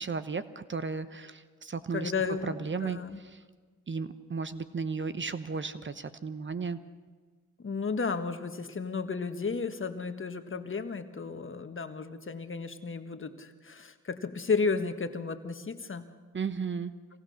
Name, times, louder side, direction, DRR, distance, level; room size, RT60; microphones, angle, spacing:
voice 1, 0.0-2.1 2.4-3.0 3.3-3.4 3.9-6.8 16.3-16.9, right 5 dB, 35° right, 12 dB, 1.1 m, -34 dB
voice 2, 1.9-3.2 7.6-16.1, left 4 dB, 40° left, 8 dB, 1.5 m, -33 dB
25.0 x 18.5 x 6.5 m, 1.4 s
supercardioid pair, 55°, 31 cm